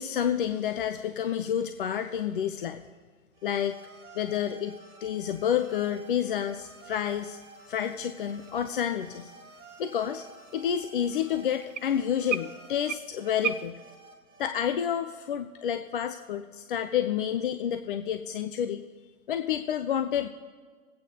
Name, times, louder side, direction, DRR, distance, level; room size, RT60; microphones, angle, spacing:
voice 1, 0.0-2.8 3.4-3.7 4.1-4.7 5.0-7.4 7.7-9.3 9.8-10.2 10.5-13.8 14.4-18.8 19.3-20.3, left 9 dB, 40° left, 8 dB, 0.4 m, -29 dB
sound 1, 3.3-14.5, right 3 dB, 35° right, 1.6 m, -51 dB
sound 2, 5.1-13.7, right 10 dB, 60° right, 0.5 m, -41 dB
21.5 x 8.6 x 2.7 m, 1.5 s
figure-of-eight pair, 110°, 43 cm